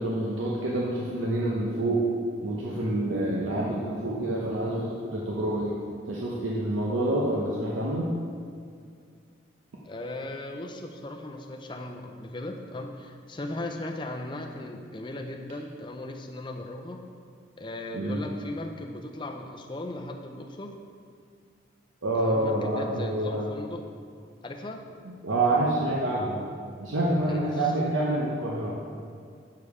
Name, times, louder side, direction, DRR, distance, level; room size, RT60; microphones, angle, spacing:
voice 1, 0.0-2.1 2.4-5.8 6.0-8.1 17.9-18.2 22.0-23.5 25.0-26.5 26.8-28.8, right 1 dB, 85° right, -4 dB, 0.8 m, -27 dB
voice 2, 9.8-17.0 17.6-20.8 22.2-23.8 24.4-24.8 27.3-27.9, left 1 dB, 25° left, 3 dB, 0.5 m, -37 dB
6.9 x 5.2 x 4.8 m, 2.2 s
head